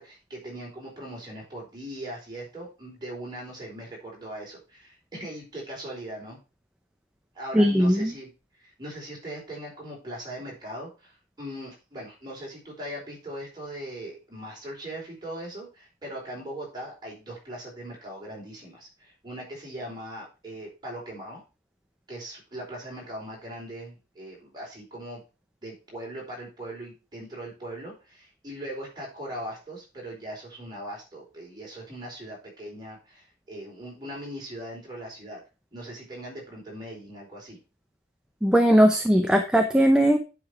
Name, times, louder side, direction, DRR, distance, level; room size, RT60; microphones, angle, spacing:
voice 1, 0.0-6.4 7.3-8.3 8.6-21.4 22.1-25.2 25.6-35.4 35.7-37.6, right 1 dB, 20° right, -3 dB, 4.4 m, -40 dB
voice 2, 7.5-8.1 38.4-40.2, equal, 5° right, 4 dB, 0.7 m, -19 dB
9.8 x 5.0 x 4.8 m, 0.30 s
head